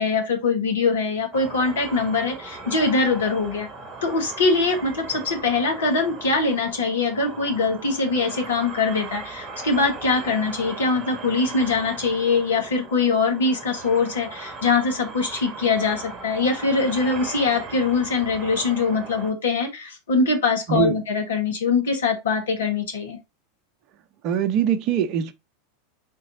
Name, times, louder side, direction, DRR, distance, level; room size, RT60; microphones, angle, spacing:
voice 1, 0.0-3.7 4.0-23.2, left 4 dB, 70° left, 1.3 m, -23 dB
sound 1, 1.3-19.3, right 3 dB, 30° right, 1.0 m, -38 dB
voice 2, 24.2-25.3, right 8 dB, 45° right, 0.6 m, -22 dB
4.5 x 4.1 x 2.6 m
figure-of-eight pair, 85°, 0 cm